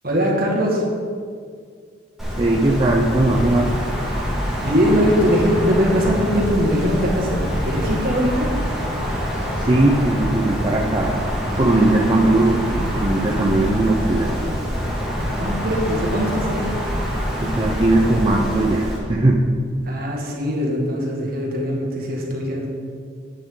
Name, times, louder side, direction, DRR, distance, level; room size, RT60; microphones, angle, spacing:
voice 1, 0.0-0.8 4.4-8.5 15.4-16.7 19.8-22.7, equal, 50° right, -2 dB, 1.9 m, -21 dB
Wind, 2.2-19.0, equal, ahead, 1.8 m, -25 dB
voice 2, 2.4-3.7 9.6-11.3 11.6-14.4 17.4-19.4, right 2 dB, 25° right, -2 dB, 0.6 m, -19 dB
10.5 x 8.7 x 3.8 m, 2.1 s
head